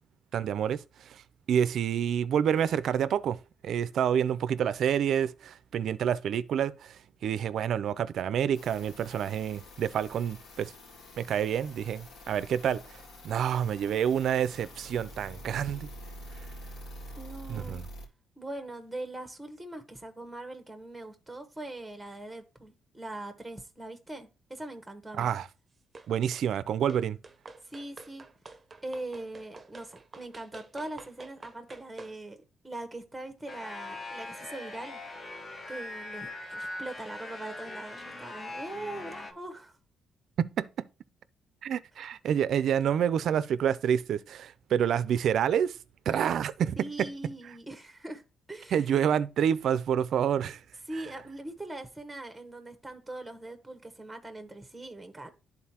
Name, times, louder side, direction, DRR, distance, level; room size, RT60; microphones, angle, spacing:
voice 1, 0.3-0.8 1.1-1.2 1.5-3.4 3.6-10.7 11.2-12.8 13.2-15.9 17.5-17.9 25.2-25.5 26.1-27.2 40.4-40.7 41.6-45.7 46.1-47.1 48.7-50.6, right 9 dB, 70° right, 0.4 m, -28 dB
sound 1, 8.5-18.1, equal, 80° left, 2.1 m, -47 dB
voice 2, 17.2-17.8 18.4-25.3 27.6-28.3 28.8-35.0 35.7-39.7 46.8-48.2 48.5-48.9 50.9-55.3, right 2 dB, 5° right, 1.0 m, -41 dB
sound 2, 25.9-26.5 26.9-32.2, right 3 dB, 30° right, 0.7 m, -49 dB
sound 3, 33.5-39.3, left 2 dB, 35° left, 1.2 m, -41 dB
11.0 x 3.9 x 2.8 m
cardioid pair, 90°, 0 cm